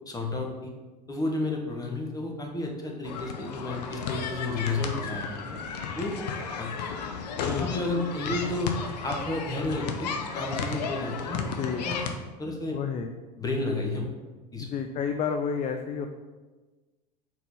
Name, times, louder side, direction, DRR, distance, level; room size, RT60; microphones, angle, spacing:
voice 1, 0.1-0.7 1.1-5.6 6.0-6.1 6.6-6.7 7.4-11.5 11.8-12.0 12.4-12.8 13.4-14.1 14.5-14.7, left 2 dB, 15° left, 1 dB, 1.3 m, -32 dB
sound 1, 3.0-12.1, left 5 dB, 75° left, 0.7 m, -33 dB
voice 2, 7.4-7.7 11.6-11.8 12.7-13.1 14.6-16.1, left 6 dB, 35° left, 6 dB, 0.5 m, -30 dB
4.6 x 4.2 x 5.3 m, 1.2 s
hypercardioid pair, 85°, 21 cm